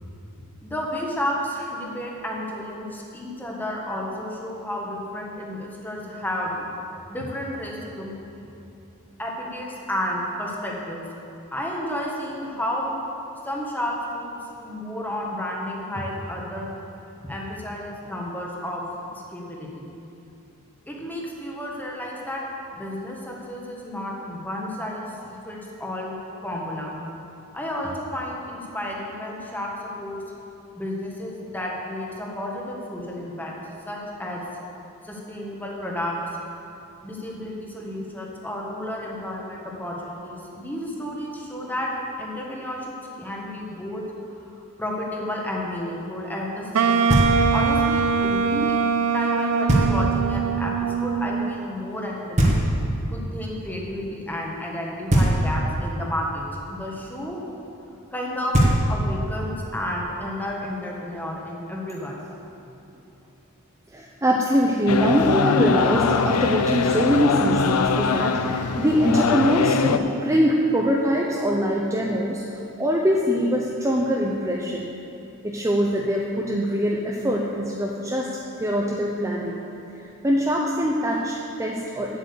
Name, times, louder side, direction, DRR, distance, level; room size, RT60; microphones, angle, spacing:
voice 1, 0.6-6.7 7.1-8.1 9.2-11.0 11.5-13.0 13.4-16.7 17.2-18.8 19.1-19.9 20.9-22.4 22.7-26.1 26.4-26.9 27.5-30.2 30.7-33.5 33.9-34.4 35.0-36.1 37.0-41.9 42.2-42.9 43.2-44.0 44.4-52.6 53.1-57.4 58.1-58.5 58.9-62.2, left 1 dB, 10° left, -2 dB, 1.5 m, -31 dB
Wind instrument woodwind instrument, 46.7-51.8, right 5 dB, 85° right, 0.4 m, -22 dB
Knock, 47.1-47.8 49.7-50.3 52.4-53.2 55.1-55.9 58.2-58.3 58.5-59.3, right 1 dB, 30° right, 1.5 m, -21 dB
voice 2, 63.9-74.9 75.4-78.3 78.6-79.6 80.0-82.2, equal, 15° right, -2 dB, 0.6 m, -23 dB
sound 1, 64.9-70.0, left 5 dB, 80° left, 0.5 m, -22 dB
9.0 x 8.0 x 6.9 m, 2.8 s
head